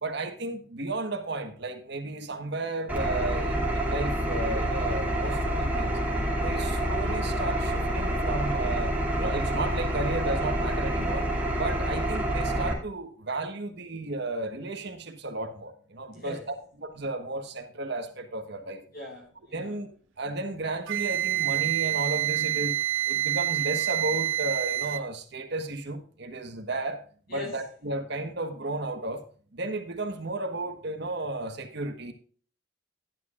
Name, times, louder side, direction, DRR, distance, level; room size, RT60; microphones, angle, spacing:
voice 1, 0.0-6.0 6.4-8.9 9.2-11.2 11.5-16.4 16.8-18.8 19.5-22.8 23.1-27.0 27.3-29.2 29.5-32.1, right 2 dB, 60° right, 1.4 m, -33 dB
Engine, 2.9-12.7, right 1 dB, 10° right, 2.5 m, -28 dB
voice 2, 18.9-19.8 27.3-27.6, left 2 dB, 50° left, 5.2 m, -40 dB
Wind instrument woodwind instrument, 20.9-25.1, right 15 dB, 85° right, 0.5 m, -27 dB
12.0 x 10.5 x 2.5 m
head